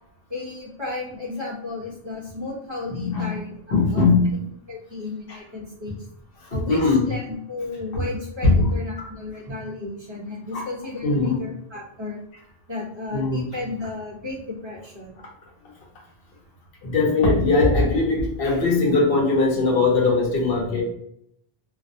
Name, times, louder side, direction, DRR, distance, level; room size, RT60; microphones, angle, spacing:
voice 1, 0.3-3.5 3.9-4.1 4.3-6.1 6.5-12.2 12.7-15.1, left 3 dB, 30° right, -5 dB, 0.7 m, -33 dB
voice 2, 2.9-3.3 3.7-4.3 5.3-5.4 6.4-7.0 7.9-8.0 8.4-8.7 9.0-9.1 10.5-10.6 11.0-11.4 13.1-13.4 16.8-20.8, left 3 dB, 65° left, -1 dB, 0.9 m, -20 dB
2.4 x 2.1 x 2.6 m, 0.72 s
omnidirectional pair, 1.1 m